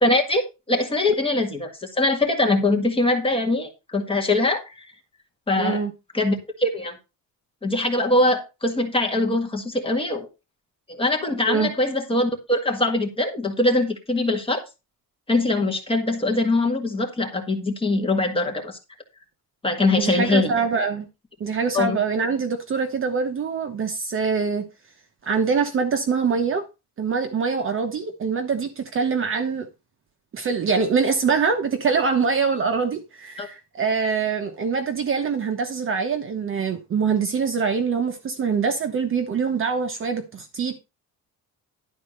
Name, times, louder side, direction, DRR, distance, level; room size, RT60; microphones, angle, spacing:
voice 1, 0.0-4.9 5.5-5.8 6.1-7.0 7.6-10.3 10.9-14.6 15.3-18.8 19.6-20.5 21.7-22.0 33.4-33.5, left 2 dB, 15° left, 1.8 m, -22 dB
voice 2, 5.6-5.9 11.5-11.7 20.0-21.1 21.4-24.6 25.2-26.6 27.0-29.7 30.3-40.8, right 5 dB, 35° right, 1.1 m, -24 dB
12.0 x 4.2 x 6.5 m
cardioid pair, 175°, 35 cm